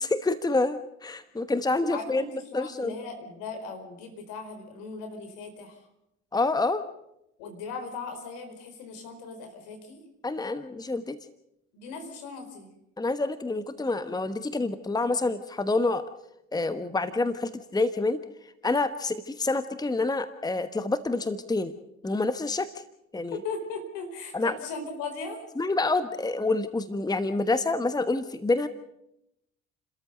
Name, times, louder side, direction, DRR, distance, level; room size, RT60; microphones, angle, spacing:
voice 1, 0.0-2.2 2.5-2.9 6.3-6.8 10.2-11.2 13.0-16.0 16.5-18.2 18.6-21.7 22.0-22.7 23.1-23.4 24.3-24.6 25.6-28.7, left 3 dB, 10° left, 12 dB, 1.2 m, -27 dB
voice 2, 1.9-5.9 7.4-10.0 11.7-12.7 23.4-25.4, left 4 dB, 70° left, 6 dB, 4.6 m, -38 dB
30.0 x 13.5 x 6.7 m, 0.83 s
figure-of-eight pair, 60°, 35 cm